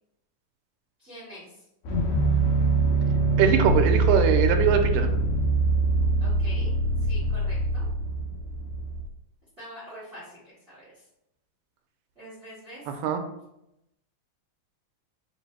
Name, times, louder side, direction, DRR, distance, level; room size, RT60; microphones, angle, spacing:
voice 1, 1.0-1.6 6.2-6.7 7.0-7.9 9.6-11.1 12.1-12.9, equal, 45° right, -9 dB, 0.8 m, -45 dB
sound 1, 1.9-9.1, right 2 dB, 75° left, 1.8 m, -24 dB
voice 2, 3.4-5.1 13.0-13.2, right 8 dB, 85° right, 6 dB, 2.1 m, -22 dB
5.0 x 2.0 x 4.1 m, 0.83 s
omnidirectional pair, 3.7 m